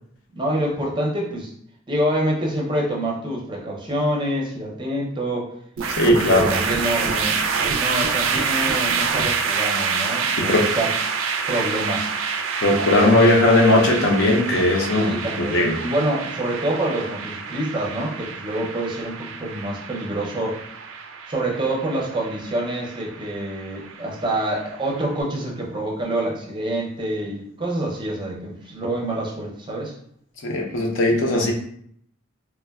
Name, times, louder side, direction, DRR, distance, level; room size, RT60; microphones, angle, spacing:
voice 1, 0.4-1.5 1.9-5.5 6.1-11.0 11.5-12.1 14.9-20.6 21.3-29.9, right 1 dB, 25° right, -2 dB, 0.5 m, -26 dB
sound 1, 5.8-25.0, right 5 dB, 80° right, 0.4 m, -27 dB
voice 2, 6.0-6.5 10.4-10.7 12.6-15.1 15.4-15.8 30.4-31.5, left 1 dB, 70° left, 1 dB, 0.5 m, -18 dB
3.3 x 2.1 x 2.2 m, 0.66 s
head